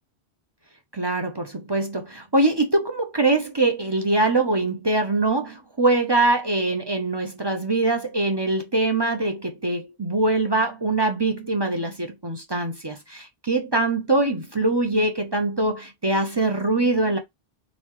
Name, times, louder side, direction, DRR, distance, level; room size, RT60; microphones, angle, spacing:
voice 1, 0.9-17.2, right 2 dB, 30° right, 0.7 m, -23 dB
4.1 x 3.7 x 3.0 m
omnidirectional pair, 1.0 m